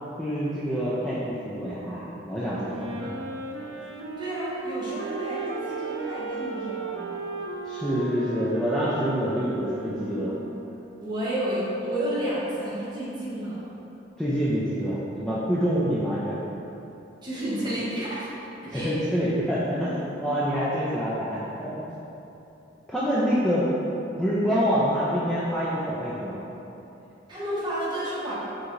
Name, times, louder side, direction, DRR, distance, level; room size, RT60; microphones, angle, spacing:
voice 1, 0.2-3.2 7.7-10.3 14.2-16.4 18.7-21.9 22.9-23.7 24.2-26.4, equal, 5° left, -10 dB, 0.4 m, -26 dB
Wind instrument woodwind instrument, 2.5-10.8, right 4 dB, 80° right, 0.4 m, -36 dB
voice 2, 4.2-7.3 11.0-13.6 17.2-18.3 18.6-18.9 27.3-28.3, right 1 dB, 25° right, -9 dB, 1.0 m, -31 dB
4.6 x 3.8 x 2.6 m, 2.9 s
head